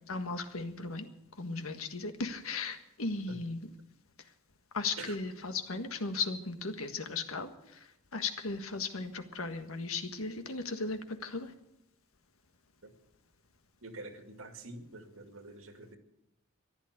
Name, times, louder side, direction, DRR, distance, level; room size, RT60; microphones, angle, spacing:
voice 1, 0.1-1.1 1.4-3.6 4.7-11.5, left 3 dB, 85° left, 8 dB, 1.6 m, -36 dB
voice 2, 13.8-16.0, right 2 dB, 75° right, 6 dB, 2.2 m, -46 dB
14.5 x 11.5 x 8.1 m, 0.84 s
head